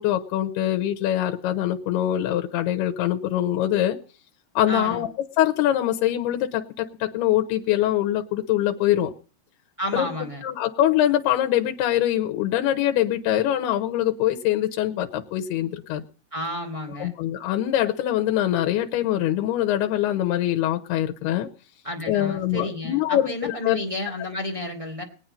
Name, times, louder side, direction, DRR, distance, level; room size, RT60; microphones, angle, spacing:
voice 1, 0.0-4.0 4.6-5.1 5.4-9.1 9.9-10.1 10.4-16.0 17.0-21.5 22.1-23.8, left 12 dB, 85° left, 5 dB, 3.0 m, -23 dB
voice 2, 4.7-5.0 9.8-10.4 16.3-17.1 21.8-25.0, left 1 dB, 10° right, 2 dB, 1.9 m, -31 dB
21.0 x 9.1 x 5.5 m, 0.40 s
omnidirectional pair, 4.6 m